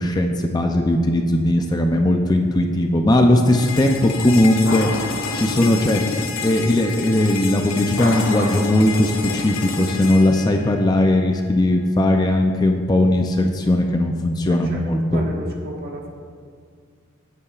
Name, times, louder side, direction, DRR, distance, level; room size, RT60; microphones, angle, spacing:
voice 1, 0.0-4.9 5.3-6.0 6.4-15.2, left 1 dB, 20° left, 3 dB, 0.5 m, -18 dB
sound 1, 3.5-11.4, left 4 dB, 80° left, 0.8 m, -29 dB
sound 2, 4.6-6.8 7.8-10.3, left 1 dB, 65° left, 2.7 m, -33 dB
voice 2, 14.5-14.8 15.1-16.1, equal, 50° right, -1 dB, 1.5 m, -33 dB
16.0 x 8.5 x 2.4 m, 2.1 s
head